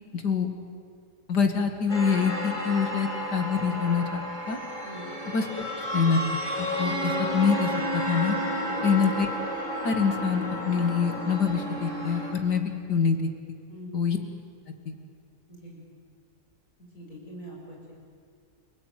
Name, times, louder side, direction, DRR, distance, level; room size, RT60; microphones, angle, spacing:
voice 1, 0.1-0.5 1.3-4.6 5.3-5.6 5.9-8.4 8.8-9.3 9.8-13.2 13.9-14.2 14.9-15.0, left 6 dB, 90° left, 6 dB, 2.7 m, -25 dB
sound 1, 1.9-12.3, equal, 25° left, 4.8 m, -32 dB
voice 2, 13.7-14.1 15.5-15.8 16.9-17.9, equal, 55° left, -2 dB, 7.2 m, -43 dB
29.5 x 19.0 x 9.3 m, 2.2 s
omnidirectional pair, 1.7 m